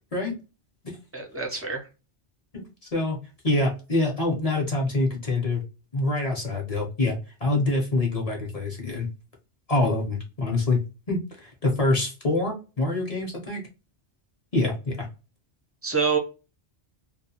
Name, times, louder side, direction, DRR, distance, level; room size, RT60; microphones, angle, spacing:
voice 1, 1.1-1.9 15.8-16.2, right 5 dB, 25° right, 1 dB, 0.3 m, -26 dB
voice 2, 2.5-3.2 3.4-5.6 5.9-9.1 9.7-10.8 11.1-13.6 14.5-15.1, left 2 dB, 40° left, 0 dB, 0.6 m, -25 dB
2.3 x 2.2 x 2.8 m, 0.31 s
omnidirectional pair, 1.2 m